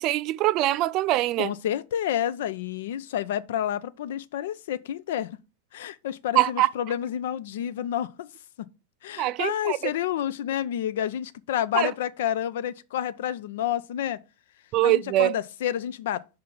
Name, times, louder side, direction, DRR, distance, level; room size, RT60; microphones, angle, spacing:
voice 1, 0.0-1.5 6.4-6.7 9.2-9.8 11.7-11.9 14.7-15.4, right 15 dB, 40° right, 0.3 m, -23 dB
voice 2, 1.4-5.4 5.7-8.3 9.0-14.2 14.8-16.4, left 10 dB, 55° left, 0.4 m, -29 dB
5.5 x 3.7 x 5.7 m
figure-of-eight pair, 90°, 0 cm